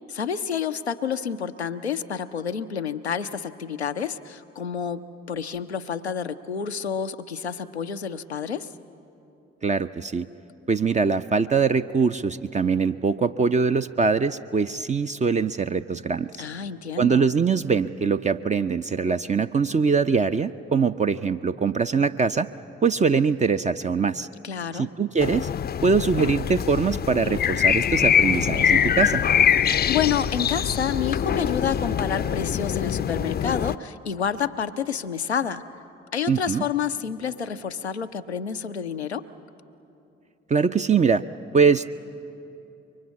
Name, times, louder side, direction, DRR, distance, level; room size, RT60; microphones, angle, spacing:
voice 1, 0.1-8.7 16.4-17.3 24.4-24.9 29.9-35.6 36.1-39.3, left 7 dB, 90° left, 8 dB, 0.5 m, -29 dB
voice 2, 9.6-10.3 10.7-16.3 17.0-22.5 22.8-24.3 24.7-25.5 25.8-29.2 36.3-36.6 40.5-41.2 41.5-41.9, right 5 dB, 25° right, 9 dB, 0.5 m, -22 dB
sound 1, 25.2-33.8, left 8 dB, 30° left, 0.5 m, -23 dB
26.0 x 23.5 x 8.4 m, 2.8 s
figure-of-eight pair, 40°, 32 cm